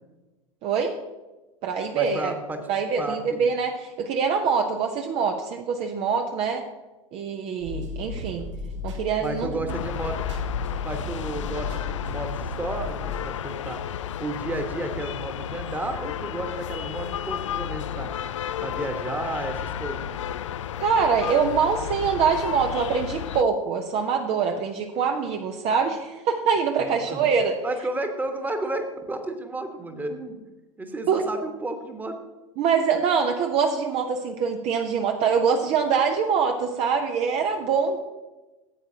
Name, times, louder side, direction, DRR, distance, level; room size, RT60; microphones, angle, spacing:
voice 1, 0.6-1.0 1.6-2.3 2.7-6.6 7.1-8.5 8.8-9.8 20.8-27.6 31.1-31.2 32.6-38.0, right 6 dB, 35° right, 4 dB, 0.8 m, -24 dB
voice 2, 1.9-2.6 3.0-3.5 9.2-10.2 10.8-13.8 14.2-18.1 18.6-20.1 26.8-27.3 27.6-30.4 30.8-32.1, right 2 dB, 10° right, 5 dB, 1.4 m, -32 dB
sound 1, 7.6-13.3, left 3 dB, 65° right, 2.3 m, -35 dB
sound 2, 9.7-23.4, left 9 dB, 65° left, 0.4 m, -32 dB
15.0 x 8.9 x 2.8 m, 1.1 s
figure-of-eight pair, 85°, 17 cm